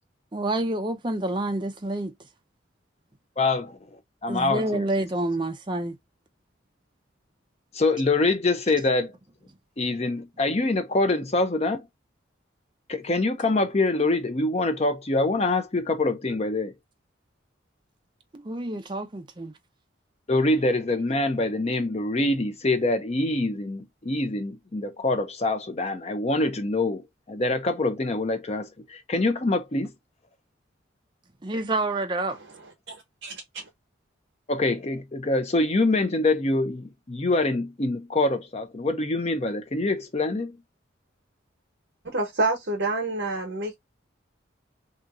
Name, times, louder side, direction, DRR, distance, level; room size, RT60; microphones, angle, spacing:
voice 1, 0.3-2.1 4.3-5.9 18.3-19.5 31.4-32.4, right 2 dB, 25° right, 0.5 m, -28 dB
voice 2, 3.4-4.9 7.7-9.1 9.8-11.9 12.9-16.7 20.3-29.9 34.5-40.6, left 2 dB, 30° left, 0.6 m, -25 dB
voice 3, 32.9-33.6 42.0-43.8, right 2 dB, 60° right, 0.9 m, -28 dB
2.8 x 2.7 x 2.3 m
head